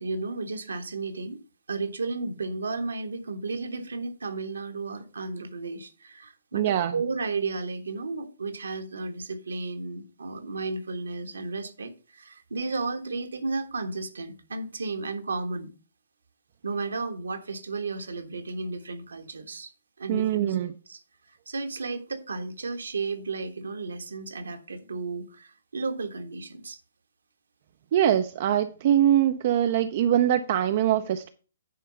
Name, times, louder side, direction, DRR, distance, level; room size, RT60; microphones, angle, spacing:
voice 1, 0.0-1.4 1.7-15.7 16.6-19.7 20.0-20.6 20.9-21.0 21.3-26.8, right 3 dB, 70° right, 1.3 m, -33 dB
voice 2, 6.5-6.9 20.1-20.7 27.9-31.3, right 11 dB, 45° right, 0.6 m, -23 dB
10.0 x 4.6 x 5.6 m
figure-of-eight pair, 125°, 0 cm